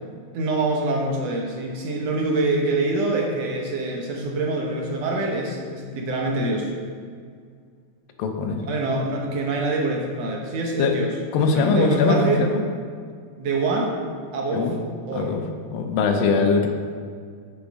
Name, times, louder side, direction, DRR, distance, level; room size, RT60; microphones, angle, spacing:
voice 1, 0.3-6.7 8.6-12.4 13.4-14.0 14.3-14.7 15.1-15.3, right 2 dB, 65° right, 0 dB, 1.8 m, -25 dB
voice 2, 8.2-8.6 10.8-10.9 11.3-12.6 14.5-14.7 15.1-15.4 15.7-16.7, left 4 dB, 85° left, 4 dB, 2.6 m, -21 dB
7.6 x 7.0 x 5.3 m, 2.1 s
omnidirectional pair, 4.0 m